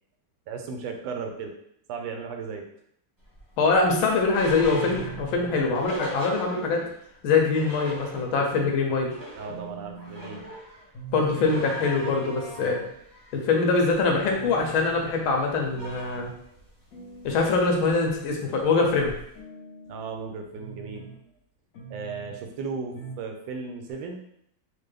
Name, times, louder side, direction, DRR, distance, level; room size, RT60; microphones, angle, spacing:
voice 1, 0.5-1.5 1.9-2.7 9.3-10.5 11.3-11.5 12.6-12.9 19.8-21.1 21.9-24.3, right 5 dB, 80° right, 4 dB, 1.3 m, -36 dB
sound 1, 3.3-6.9 7.3-7.4 7.5-8.6 8.9-19.4, right 1 dB, 15° right, 0.7 m, -42 dB
voice 2, 3.6-6.8 7.2-9.1 11.1-12.8 13.3-16.3 17.2-19.1, left 4 dB, 90° left, 1 dB, 1.6 m, -23 dB
sound 2, 4.6-5.6 6.1-6.9 7.3-8.0 8.5-8.8 9.1-9.2 9.5-10.5 10.9-11.6 11.9-12.9 13.4-13.6 14.0-14.1 14.3-15.2 15.7-16.4 16.9-17.6 18.1-18.7 19.1-20.2 20.6-21.2 21.7-22.4 22.9-23.3 23.6-23.7 23.9-24.0, right 5 dB, 60° left, 0.9 m, -43 dB
4.4 x 2.2 x 3.3 m, 0.72 s
omnidirectional pair, 2.2 m